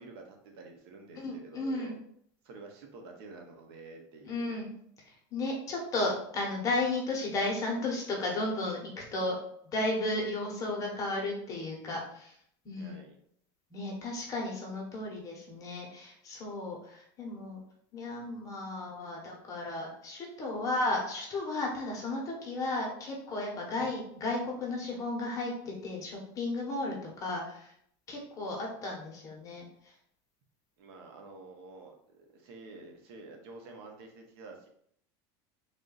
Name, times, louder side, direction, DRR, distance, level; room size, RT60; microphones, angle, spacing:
voice 1, 0.0-1.9 2.4-4.6 12.8-13.2 30.8-34.7, right 3 dB, 75° right, 2 dB, 0.9 m, -49 dB
voice 2, 1.2-1.9 4.2-4.7 5.3-9.4 9.7-12.3 12.6-13.0 13.7-17.6 17.9-27.7 28.1-29.6, left 2 dB, 25° left, -2 dB, 1.0 m, -34 dB
3.5 x 2.5 x 3.9 m, 0.67 s
cardioid pair, 165°, 13 cm